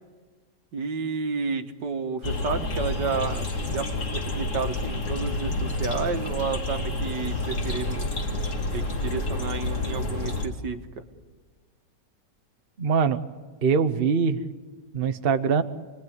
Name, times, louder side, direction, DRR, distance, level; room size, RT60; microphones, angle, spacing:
voice 1, 0.7-8.1 8.7-11.0, right 5 dB, 75° right, 7 dB, 2.1 m, -31 dB
sound 1, 2.2-10.5, left 2 dB, 45° left, 2.8 m, -29 dB
voice 2, 12.8-13.2 13.6-14.4 14.9-15.6, right 6 dB, 40° right, 9 dB, 1.0 m, -22 dB
28.5 x 21.0 x 9.4 m, 1.4 s
omnidirectional pair, 1.9 m